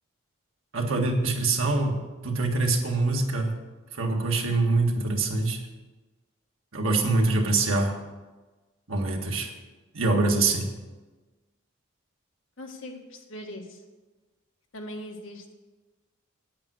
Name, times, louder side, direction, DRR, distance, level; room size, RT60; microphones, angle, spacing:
voice 1, 0.7-3.6 3.9-5.6 6.7-8.0 8.9-9.5 9.9-10.7, right 3 dB, 85° right, 1 dB, 1.8 m, -24 dB
voice 2, 12.6-13.8 14.7-15.5, left 1 dB, 70° left, 2 dB, 1.6 m, -40 dB
9.4 x 8.8 x 6.2 m, 1.2 s
head